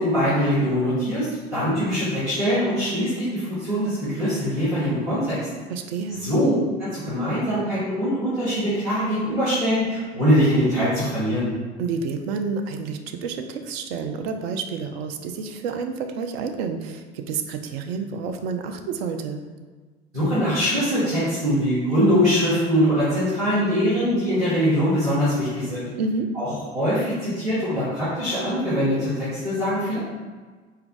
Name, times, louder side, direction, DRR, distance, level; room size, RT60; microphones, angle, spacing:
voice 1, 0.0-5.5 6.2-6.5 6.8-11.5 20.1-25.9 26.3-30.0, equal, 90° right, -13 dB, 1.4 m, -22 dB
voice 2, 5.7-6.2 11.8-19.4 26.0-26.3, right 5 dB, 65° right, 6 dB, 0.5 m, -29 dB
4.3 x 2.3 x 3.8 m, 1.4 s
figure-of-eight pair, 65°, 34 cm